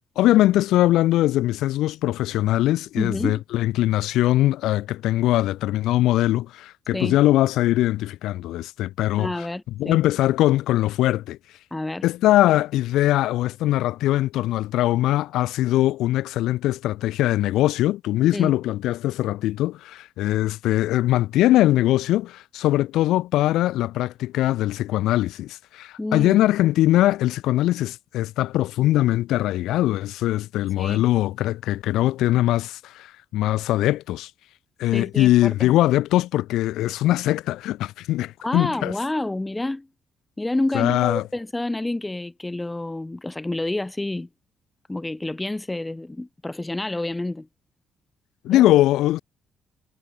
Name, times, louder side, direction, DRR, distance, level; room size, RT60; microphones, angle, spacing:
voice 1, 0.2-9.5 9.8-11.4 12.0-34.3 34.8-38.9 40.7-41.2 48.4-49.2, left 15 dB, 90° left, 2.6 m, -21 dB
voice 2, 3.0-3.4 6.9-7.2 9.2-10.0 11.7-12.0 18.3-18.6 26.0-26.4 30.8-31.0 34.9-35.7 38.4-39.9 40.4-44.3 44.9-47.5 48.5-48.7, left 2 dB, 15° left, 4.8 m, -28 dB
cardioid pair, 90°, 0 cm